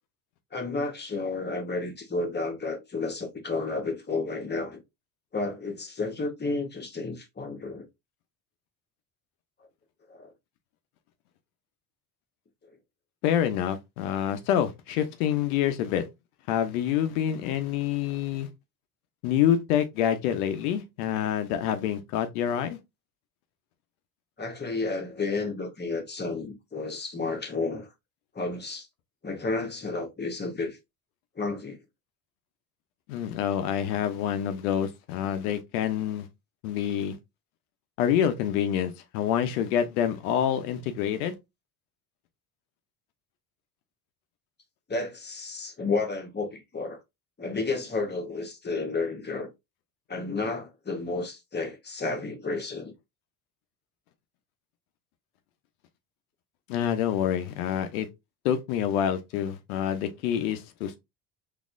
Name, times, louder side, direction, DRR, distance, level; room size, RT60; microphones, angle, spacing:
voice 1, 0.5-4.8 5.3-7.8 10.1-10.3 24.4-27.9 28.3-28.9 29.2-30.8 31.4-31.8 44.9-47.0 47.4-49.5 50.1-52.9, left 3 dB, 25° left, 1.2 m, -31 dB
voice 2, 13.2-16.1 16.5-18.5 19.2-22.8 33.1-36.3 36.6-37.2 38.0-41.3 56.7-58.1 58.4-61.0, left 10 dB, 85° left, 0.8 m, -27 dB
4.1 x 2.8 x 2.5 m
hypercardioid pair, 75°, 43 cm